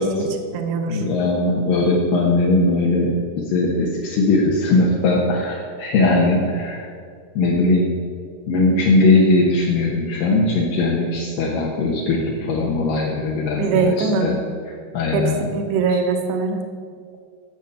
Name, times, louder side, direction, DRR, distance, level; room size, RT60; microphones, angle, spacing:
voice 1, 0.0-1.0 13.5-14.3 15.1-16.6, right 4 dB, 75° right, 4 dB, 2.9 m, -22 dB
voice 2, 0.9-6.9 7.4-7.9 8.5-14.4 14.9-15.4 15.9-16.0, left 2 dB, 70° left, -3 dB, 2.2 m, -19 dB
9.5 x 7.7 x 6.9 m, 2.1 s
omnidirectional pair, 5.3 m